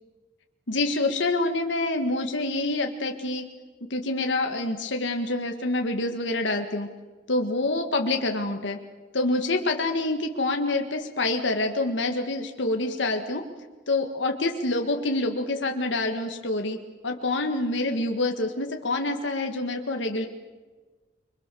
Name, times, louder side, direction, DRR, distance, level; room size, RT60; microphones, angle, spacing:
voice 1, 0.7-3.5 3.9-6.9 7.3-8.8 9.1-13.4 13.9-16.8 17.0-20.3, left 2 dB, 75° left, 4 dB, 1.8 m, -26 dB
29.5 x 23.0 x 7.0 m, 1.3 s
head